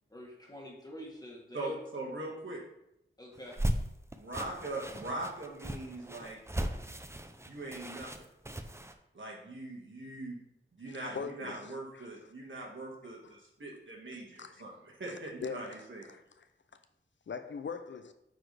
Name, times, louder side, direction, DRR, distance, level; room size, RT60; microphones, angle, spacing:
voice 1, 0.1-1.8 3.2-3.6, left 1 dB, 20° left, 1.8 m, -45 dB
voice 2, 1.5-2.6 4.1-6.4 7.4-8.3 9.1-10.4 10.7-16.0, right 2 dB, 70° right, 1.7 m, -41 dB
sound 1, 3.4-8.9, right 1 dB, 15° right, 0.5 m, -37 dB
voice 3, 10.9-12.1 13.2-13.4 14.4-14.5 15.4-16.5 17.3-18.1, left 5 dB, 65° left, 0.5 m, -42 dB
9.0 x 4.1 x 3.3 m
wide cardioid pair, 85°, 21 cm